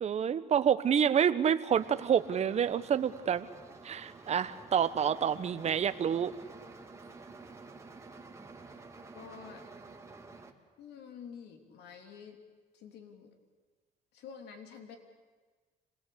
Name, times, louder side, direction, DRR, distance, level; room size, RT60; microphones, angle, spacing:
voice 1, 0.0-3.5 3.8-6.3, right 8 dB, 40° right, 11 dB, 1.1 m, -28 dB
sound 1, 1.7-10.5, right 3 dB, 15° right, 2.1 m, -51 dB
voice 2, 9.1-9.7 10.8-12.4 12.7-13.3 14.1-15.0, left 7 dB, 75° left, 5 dB, 3.2 m, -48 dB
26.5 x 20.0 x 8.6 m, 1.4 s
cardioid pair, 110°, 17 cm